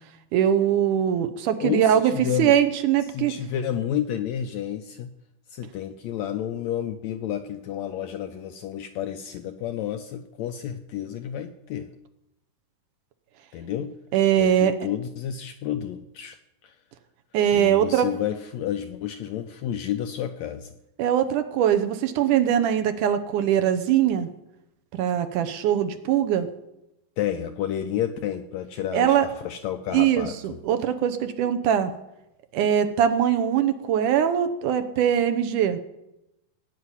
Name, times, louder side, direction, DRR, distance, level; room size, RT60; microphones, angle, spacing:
voice 1, 0.3-3.3 14.1-14.8 17.3-18.1 21.0-24.3 24.9-26.5 28.9-29.3 29.9-31.9 32.5-35.8, right 9 dB, 75° right, 9 dB, 2.4 m, -22 dB
voice 2, 1.6-2.6 3.1-5.1 5.5-11.9 13.5-13.9 14.4-16.4 16.6-16.7 17.5-20.7 27.2-30.3, left 10 dB, 75° left, 7 dB, 1.7 m, -30 dB
17.0 x 5.8 x 9.7 m, 0.88 s
omnidirectional pair, 3.8 m